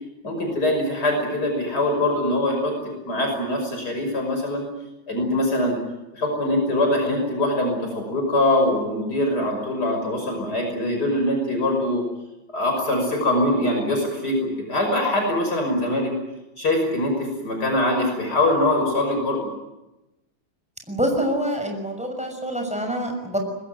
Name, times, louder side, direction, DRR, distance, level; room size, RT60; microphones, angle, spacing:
voice 1, 0.2-2.7 3.1-4.6 5.1-5.8 6.1-12.0 12.5-16.1 16.6-19.4, left 1 dB, 55° left, 2 dB, 6.4 m, -23 dB
voice 2, 20.9-23.4, equal, 5° right, 3 dB, 6.2 m, -26 dB
24.5 x 21.0 x 9.1 m, 0.96 s
omnidirectional pair, 2.1 m